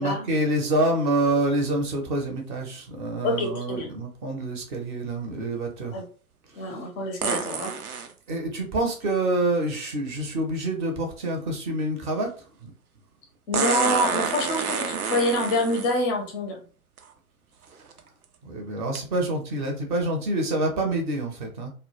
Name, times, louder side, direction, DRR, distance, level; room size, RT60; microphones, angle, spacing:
voice 1, 0.0-6.0 6.5-6.7 8.3-12.7 18.4-21.7, right 1 dB, 35° right, 3 dB, 0.6 m, -27 dB
voice 2, 3.2-3.9 5.9-6.0 6.6-7.7 13.5-16.6, left 1 dB, 20° left, 3 dB, 0.4 m, -26 dB
sound 1, 7.2-8.1 10.1-10.2 13.5-16.0 17.0-17.1 17.7-18.0 19.0-19.1, right 6 dB, 85° right, 0.6 m, -28 dB
2.1 x 2.0 x 3.0 m, 0.39 s
figure-of-eight pair, 110°, 43 cm